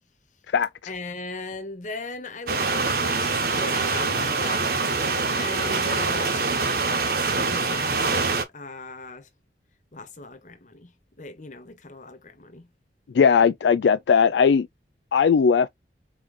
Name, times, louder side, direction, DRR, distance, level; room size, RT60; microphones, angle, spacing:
voice 1, 0.9-4.8 5.3-9.3 9.9-12.7, left 3 dB, 45° left, 1.1 m, -38 dB
sound 1, 2.5-8.4, right 4 dB, 55° right, 1.2 m, -24 dB
voice 2, 13.1-14.7 15.1-15.7, left 6 dB, 80° left, 0.4 m, -18 dB
4.4 x 3.1 x 3.7 m
head